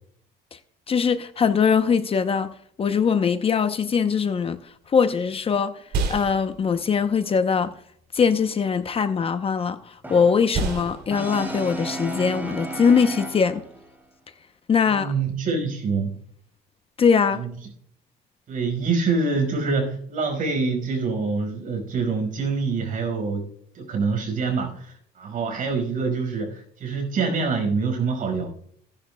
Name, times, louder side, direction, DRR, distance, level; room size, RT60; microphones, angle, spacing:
voice 1, 0.9-7.8 8.1-13.6 14.7-15.1 17.0-17.4, left 6 dB, 35° left, 0.7 m, -22 dB
sound 1, 4.6-14.2, right 4 dB, 70° right, 2.9 m, -34 dB
Brass instrument, 10.0-13.8, right 1 dB, 10° right, 2.8 m, -34 dB
voice 2, 14.9-16.2 17.3-17.5 18.5-23.5 23.7-28.5, right 4 dB, 50° right, 5.0 m, -25 dB
17.0 x 10.5 x 2.2 m
cardioid pair, 110°, 17 cm